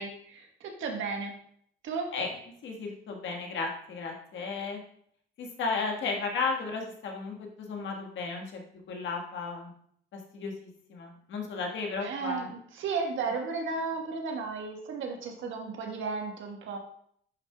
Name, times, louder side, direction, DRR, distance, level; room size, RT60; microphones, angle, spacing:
voice 1, 0.0-1.3 1.8-2.1 12.0-16.8, right 4 dB, 75° right, 2 dB, 1.4 m, -34 dB
voice 2, 2.6-4.8 5.4-8.6 8.9-9.7 10.1-12.5, left 4 dB, 70° left, 1 dB, 1.6 m, -34 dB
10.5 x 4.6 x 2.3 m, 0.64 s
cardioid pair, 90°, 20 cm